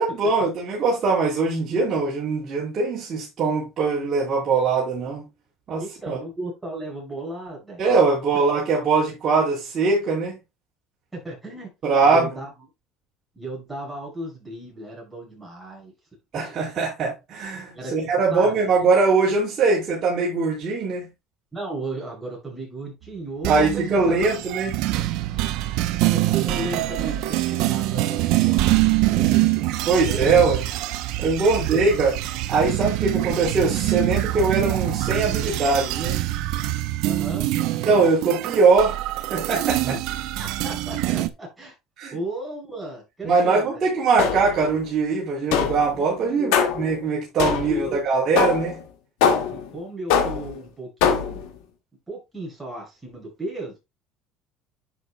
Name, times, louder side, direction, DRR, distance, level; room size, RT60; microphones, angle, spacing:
voice 1, 0.0-5.2 5.7-6.2 7.8-10.4 11.8-12.3 16.3-21.1 23.5-24.7 29.9-30.6 31.2-32.1 32.5-36.2 37.8-39.0 39.3-40.0 42.0-42.1 43.2-48.8, right 4 dB, 30° right, 4.1 m, -21 dB
voice 2, 5.8-7.8 8.3-8.4 11.1-11.7 12.0-12.5 13.4-15.9 17.7-17.9 18.3-18.9 21.5-24.3 25.4-25.6 26.1-29.5 30.0-30.4 31.5-32.0 35.0-35.3 37.0-37.5 39.8-40.0 40.4-41.7 42.1-43.9 45.6-46.7 47.5-48.0 49.7-51.5 52.1-53.8, right 2 dB, 5° right, 5.7 m, -35 dB
sound 1, 23.4-41.3, right 16 dB, 70° right, 0.8 m, -24 dB
sound 2, 44.2-44.7 45.5-45.9 46.5-46.9 47.4-47.9 48.4-48.8 49.2-49.7 50.1-50.6 51.0-51.5, left 7 dB, 90° left, 2.0 m, -22 dB
10.5 x 7.2 x 2.3 m
cardioid pair, 155°, 0 cm